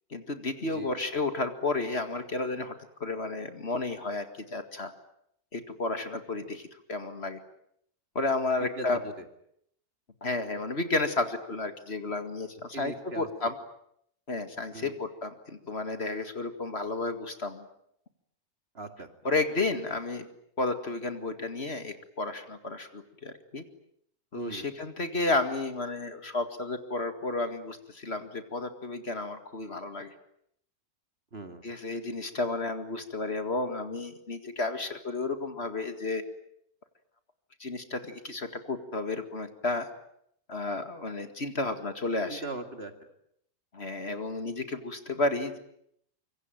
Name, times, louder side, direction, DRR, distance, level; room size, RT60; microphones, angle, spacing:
voice 1, 0.1-2.7 3.0-4.9 5.5-7.4 8.2-9.0 10.2-13.5 14.3-17.6 19.2-20.3 20.6-23.6 24.3-30.1 31.6-36.2 37.6-39.9 40.5-42.4 43.7-45.6, left 3 dB, 45° left, 8 dB, 2.2 m, -32 dB
voice 2, 8.6-9.1 12.7-13.3 14.7-15.0 18.7-19.1 24.4-24.7 31.3-31.6 42.3-42.9, right 3 dB, 40° right, 7 dB, 2.5 m, -40 dB
25.5 x 23.5 x 9.2 m, 0.73 s
omnidirectional pair, 1.6 m